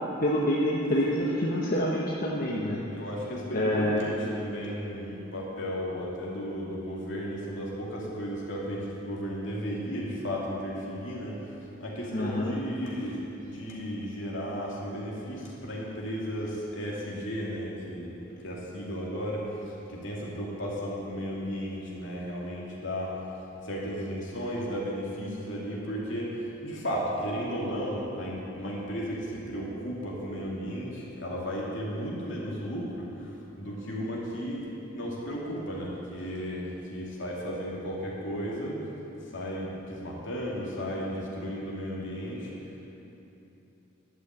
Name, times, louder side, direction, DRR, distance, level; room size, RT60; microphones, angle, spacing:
voice 1, 0.2-2.8 3.5-4.0 12.1-12.6, left 1 dB, 45° left, -3 dB, 1.0 m, -27 dB
voice 2, 2.8-23.4 23.6-38.8 39.3-42.8, equal, 65° left, -4 dB, 2.7 m, -34 dB
12.0 x 6.3 x 8.9 m, 2.9 s
head